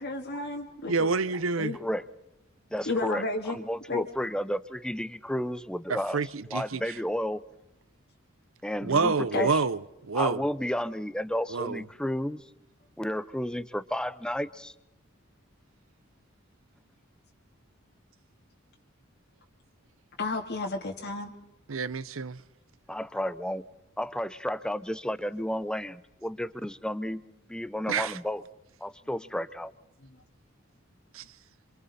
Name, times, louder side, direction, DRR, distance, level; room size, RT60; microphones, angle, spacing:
voice 1, 0.0-1.1 1.6-1.8 2.9-3.6 3.9-4.1 9.3-9.5 20.2-21.3, left 3 dB, 55° left, 2.1 m, -31 dB
voice 2, 0.9-1.8 5.9-6.8 8.8-10.5 11.5-11.8 21.7-22.4 27.9-28.2 31.1-31.2, right 4 dB, 80° right, 0.8 m, -28 dB
voice 3, 2.7-6.2 6.5-7.4 8.6-9.6 10.1-12.4 13.0-14.7 22.9-23.6 24.0-27.2 27.5-28.4 28.8-29.7, equal, 5° left, 0.7 m, -32 dB
28.0 x 26.5 x 4.2 m
head